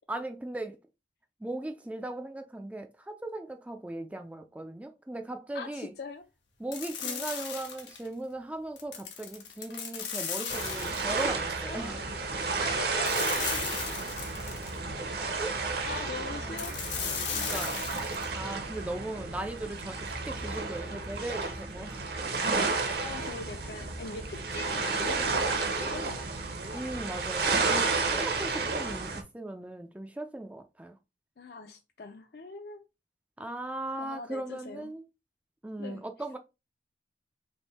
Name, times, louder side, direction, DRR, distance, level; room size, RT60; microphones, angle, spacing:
voice 1, 0.1-0.8 1.4-5.9 6.6-12.1 15.1-16.6 17.3-22.0 26.7-31.0 33.4-35.0 35.6-36.4, right 1 dB, 10° right, 0.3 m, -38 dB
voice 2, 5.5-6.3 7.0-7.3 11.6-13.6 15.8-17.9 23.0-26.5 31.4-32.8 34.0-34.9 35.8-36.0, left 4 dB, 60° left, 0.5 m, -42 dB
sound 1, 6.7-8.1 8.8-11.3 13.0-14.8 16.6-18.3, left 7 dB, 85° left, 1.0 m, -36 dB
sound 2, 10.5-29.2, right 4 dB, 60° right, 0.8 m, -32 dB
3.4 x 2.6 x 4.1 m
head